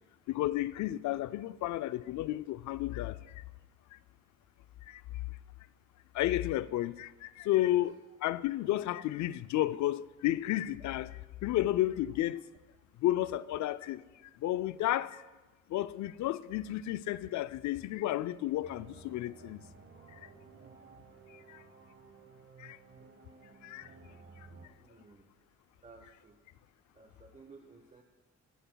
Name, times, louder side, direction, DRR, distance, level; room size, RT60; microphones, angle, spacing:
voice 1, 0.3-3.4 3.9-4.0 4.9-5.0 6.1-7.9 8.2-11.1 11.4-12.4 13.0-14.0 14.4-15.2 15.7-19.6 20.2-20.3 21.3-21.6 22.6-22.8 23.6-23.9, left 14 dB, 70° left, 0.5 m, -32 dB
voice 2, 7.5-8.2 12.3-12.4 24.8-25.3 25.8-26.4 26.9-28.0, right 4 dB, 25° right, 0.9 m, -56 dB
sound 1, 18.6-24.7, right 4 dB, 40° right, 1.3 m, -55 dB
18.5 x 11.0 x 2.3 m
cardioid pair, 90°, 30 cm